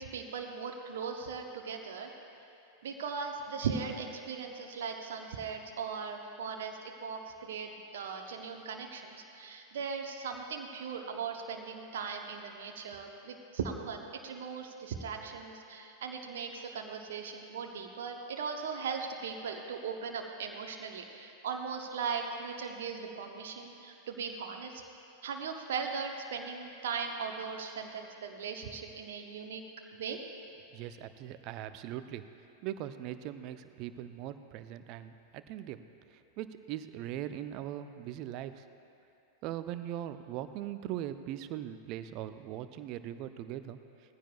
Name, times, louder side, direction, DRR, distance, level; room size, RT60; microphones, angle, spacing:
voice 1, 0.0-2.1 2.8-24.7 25.2-29.6 29.9-30.2, right 5 dB, 60° right, 2 dB, 1.0 m, -38 dB
voice 2, 30.7-32.2 32.6-35.8 36.1-38.7 39.4-43.8, right 12 dB, 40° right, 11 dB, 0.6 m, -40 dB
20.0 x 15.0 x 2.4 m, 2.8 s
figure-of-eight pair, 90°, 0 cm